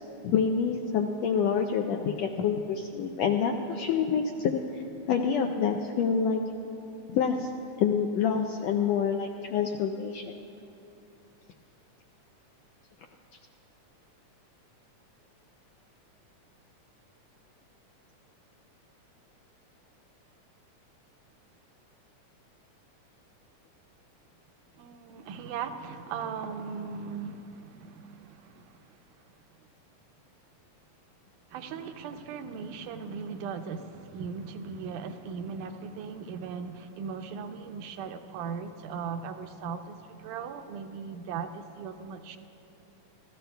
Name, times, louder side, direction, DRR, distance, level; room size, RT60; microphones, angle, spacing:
voice 1, 0.2-6.4 7.1-7.5 7.8-10.3, left 6 dB, 85° left, 3 dB, 1.5 m, -27 dB
voice 2, 24.8-28.6 31.5-42.4, right 6 dB, 90° right, 7 dB, 2.2 m, -38 dB
28.5 x 14.0 x 2.3 m, 2.8 s
omnidirectional pair, 3.6 m